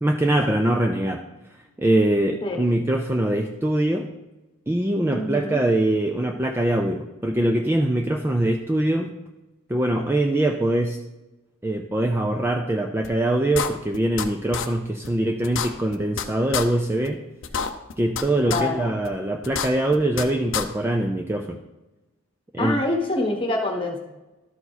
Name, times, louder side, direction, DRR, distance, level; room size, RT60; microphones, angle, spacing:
voice 1, 0.0-1.2 1.8-4.1 4.7-9.1 9.7-11.0 11.6-17.2 18.0-21.6 22.5-22.8, right 1 dB, 10° right, 3 dB, 0.4 m, -23 dB
voice 2, 5.1-5.6 18.4-18.9 22.6-24.0, left 2 dB, 25° left, 1 dB, 1.3 m, -26 dB
sound 1, 13.0-13.1 13.5-14.3 14.5-14.7 15.0-15.1 15.4-16.2 16.5-16.6 17.0-17.1 17.4-18.2 18.5-18.6 19.0-19.1 19.4-20.2 20.5-20.6, left 7 dB, 60° left, 0.6 m, -27 dB
12.5 x 4.7 x 4.1 m, 1.0 s
head